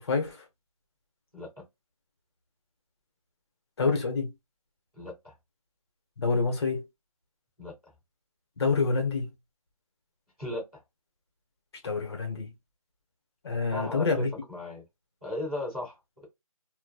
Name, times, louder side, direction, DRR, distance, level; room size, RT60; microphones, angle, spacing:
voice 1, 0.0-0.4 3.8-4.3 6.2-6.9 8.6-9.3 11.8-12.5 13.4-14.3, left 4 dB, 45° left, 1.1 m, -27 dB
voice 2, 5.0-5.3 7.6-7.7 10.4-10.6 13.7-14.8 15.2-16.2, left 1 dB, 5° left, 0.3 m, -36 dB
2.9 x 2.3 x 2.3 m
hypercardioid pair, 165°, 18 cm